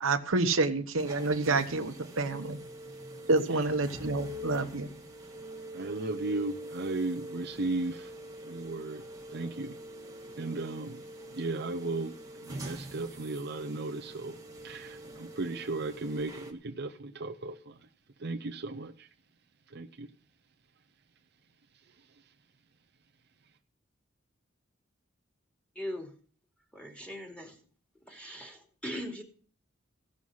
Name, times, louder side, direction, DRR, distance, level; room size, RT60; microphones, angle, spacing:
voice 1, 0.0-2.6 3.3-4.9, right 3 dB, 80° right, 7 dB, 1.0 m, -28 dB
sound 1, 1.0-16.5, equal, 15° right, 1.6 m, -44 dB
voice 2, 5.7-8.1 8.4-9.0 9.3-9.7 10.4-11.0 11.3-12.1 12.4-14.4 14.6-17.8 18.2-19.1 19.7-20.1, right 2 dB, 55° right, 5 dB, 0.7 m, -35 dB
voice 3, 25.7-26.1 26.7-27.6 28.0-29.2, equal, 5° left, 1 dB, 2.6 m, -40 dB
16.5 x 6.3 x 5.6 m, 0.44 s
head